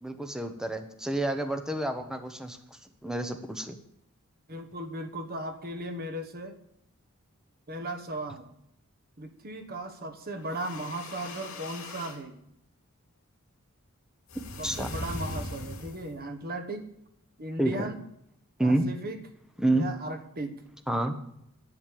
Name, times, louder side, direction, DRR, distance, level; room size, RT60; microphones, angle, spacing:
voice 1, 0.0-2.6 3.0-3.8 14.6-14.9 17.6-17.9 18.6-18.8 19.6-19.9 20.9-21.1, right 1 dB, 5° right, 7 dB, 0.9 m, -28 dB
voice 2, 4.5-6.6 7.7-8.5 9.2-12.4 14.6-16.9 17.4-18.0 18.6-19.2 19.7-20.6, right 1 dB, 45° right, 8 dB, 1.3 m, -37 dB
sound 1, 10.4-12.2 14.3-16.2, left 1 dB, 70° left, 2.8 m, -39 dB
11.0 x 6.6 x 8.5 m, 0.74 s
head